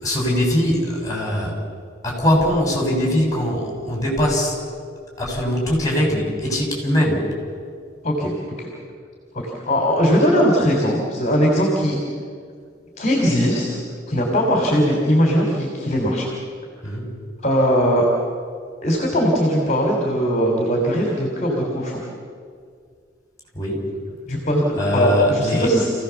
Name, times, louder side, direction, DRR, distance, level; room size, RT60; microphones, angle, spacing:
voice 1, 0.0-1.5 2.0-4.6 5.2-7.3 16.8-17.1 23.5-23.8 24.8-25.7, left 1 dB, 20° left, -1 dB, 6.5 m, -21 dB
voice 2, 9.7-12.0 13.0-13.8 14.1-16.3 17.4-18.1 18.8-22.0 24.3-25.9, equal, 40° left, 0 dB, 3.3 m, -19 dB
27.5 x 16.5 x 7.1 m, 2.1 s
head